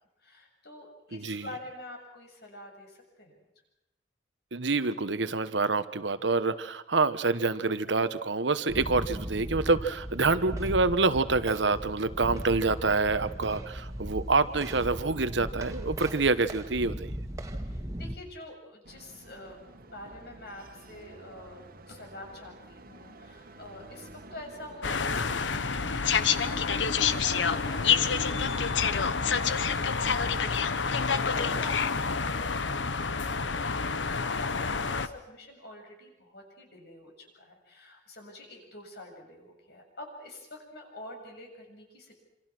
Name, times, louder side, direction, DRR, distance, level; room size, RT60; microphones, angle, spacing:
voice 1, 0.2-3.4 17.6-42.2, left 1 dB, 60° left, 2 dB, 7.4 m, -47 dB
voice 2, 1.1-1.5 4.5-17.1, right 3 dB, 75° right, 12 dB, 1.2 m, -27 dB
sound 1, 8.7-18.1, equal, 20° right, 2.0 m, -37 dB
sound 2, 18.8-30.4, right 1 dB, 50° right, 1.8 m, -49 dB
sound 3, 24.8-35.1, left 5 dB, 80° left, 1.1 m, -28 dB
27.0 x 27.0 x 6.2 m, 0.93 s
head